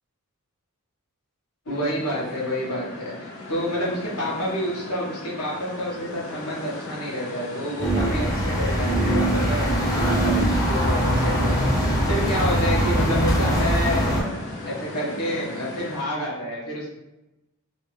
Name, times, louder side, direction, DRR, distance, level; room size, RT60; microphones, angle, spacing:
voice 1, 1.7-11.7 12.1-14.4 14.6-16.9, equal, 85° left, -6 dB, 1.2 m, -29 dB
sound 1, 1.7-16.0, left 2 dB, 70° left, 0.8 m, -37 dB
sound 2, 7.8-14.2, right 1 dB, 15° left, 0.6 m, -22 dB
2.8 x 2.7 x 3.1 m, 0.96 s
head